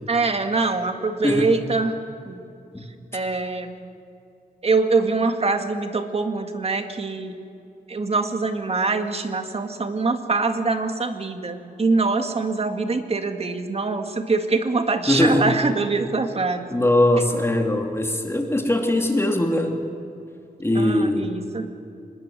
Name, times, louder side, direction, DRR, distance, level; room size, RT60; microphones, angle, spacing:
voice 1, 0.1-1.9 2.3-2.4 3.1-3.7 4.6-7.4 7.9-16.6 20.7-21.6, right 3 dB, 40° right, 6 dB, 2.0 m, -24 dB
voice 2, 15.1-15.5 16.7-19.8 20.6-21.3, left 1 dB, 15° left, 3 dB, 2.8 m, -21 dB
25.5 x 21.0 x 7.6 m, 2.6 s
wide cardioid pair, 125°, 16 cm